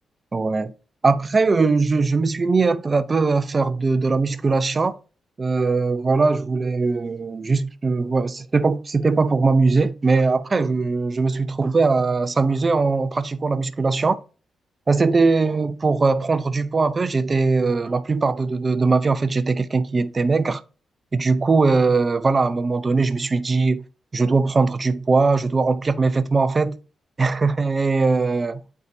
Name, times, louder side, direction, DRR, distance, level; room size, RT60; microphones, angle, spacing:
voice 1, 0.3-0.7 1.0-4.9 5.4-14.2 14.9-20.6 21.1-23.8 24.1-26.8 27.2-28.6, right 4 dB, 35° right, 0.6 m, -20 dB
7.8 x 4.7 x 2.7 m
cardioid pair, 75°, 0 cm